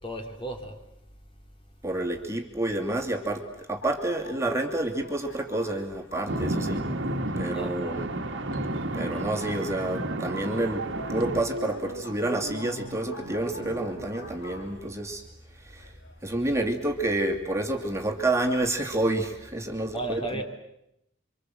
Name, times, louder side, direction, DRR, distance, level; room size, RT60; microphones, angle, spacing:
voice 1, 0.0-0.8 7.4-8.0 19.9-20.4, right 1 dB, 25° left, 2.7 m, -35 dB
voice 2, 1.8-6.9 7.4-8.1 8.9-15.2 15.6-15.9 16.2-20.4, right 1 dB, 15° right, 2.6 m, -29 dB
sound 1, 3.5-18.4, left 2 dB, 60° left, 3.5 m, -49 dB
sound 2, 6.3-11.4, right 1 dB, 60° right, 2.1 m, -31 dB
sound 3, 8.5-15.2, right 2 dB, 90° right, 1.6 m, -43 dB
29.0 x 25.5 x 7.9 m
head